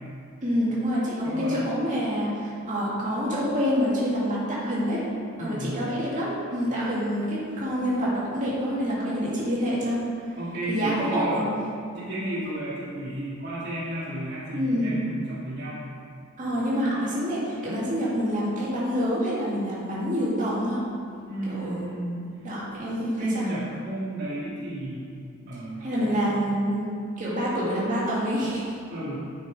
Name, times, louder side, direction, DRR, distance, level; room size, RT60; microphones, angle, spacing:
voice 1, 0.4-5.0 5.4-10.0 10.7-11.5 14.6-14.9 16.4-20.8 21.5-21.8 22.4-23.5 25.8-28.7, equal, 35° right, -8 dB, 2.4 m, -27 dB
voice 2, 1.2-1.6 5.4-5.8 10.4-11.5 12.0-15.9 21.3-22.5 23.2-26.4 28.9-29.2, right 1 dB, 50° right, -9 dB, 2.1 m, -33 dB
10.0 x 6.4 x 5.0 m, 2.3 s
head